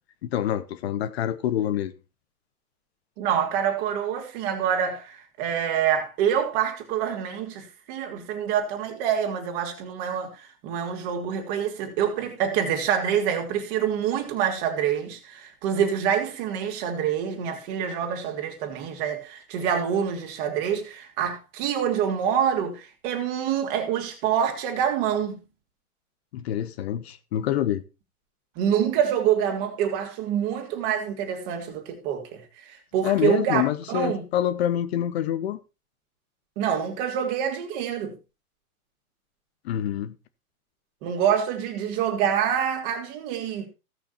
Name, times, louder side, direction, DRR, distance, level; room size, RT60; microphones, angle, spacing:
voice 1, 0.2-1.9 26.3-27.8 33.0-35.6 39.6-40.1, left 11 dB, 45° left, 1.2 m, -26 dB
voice 2, 3.2-25.4 28.5-33.6 33.9-34.2 36.6-38.1 41.0-43.7, right 8 dB, 35° right, 3.2 m, -26 dB
16.5 x 6.2 x 4.3 m
figure-of-eight pair, 115°, 45 cm